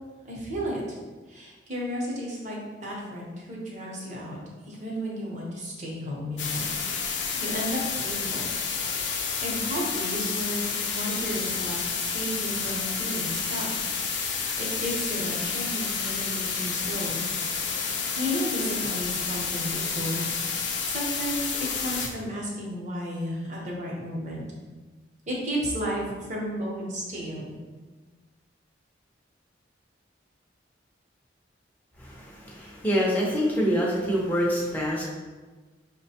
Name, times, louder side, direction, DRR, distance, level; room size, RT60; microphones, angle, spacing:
voice 1, 0.2-0.8 1.3-4.4 4.7-8.5 9.0-13.7 14.3-17.2 18.2-24.4 25.3-26.0 26.3-27.5, equal, 40° right, -4 dB, 0.9 m, -33 dB
sound 1, 6.4-22.1, left 5 dB, 75° left, 0.5 m, -30 dB
voice 2, 32.0-35.0, equal, 10° left, -4 dB, 0.6 m, -26 dB
5.8 x 2.2 x 2.8 m, 1.3 s
head